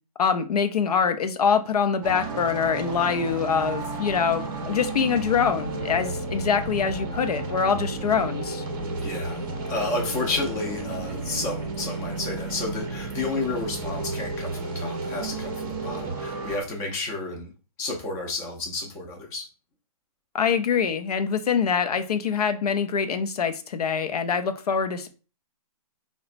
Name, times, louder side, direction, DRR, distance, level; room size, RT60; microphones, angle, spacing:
voice 1, 0.2-8.6 20.3-25.1, left 6 dB, 80° left, 8 dB, 0.5 m, -24 dB
sound 1, 2.0-16.6, right 3 dB, 35° right, 0.6 m, -32 dB
voice 2, 9.0-9.4 9.7-17.5 17.8-19.5, left 2 dB, 15° left, 1 dB, 0.5 m, -31 dB
3.9 x 2.1 x 2.4 m, 0.34 s
hypercardioid pair, 155°, 19 cm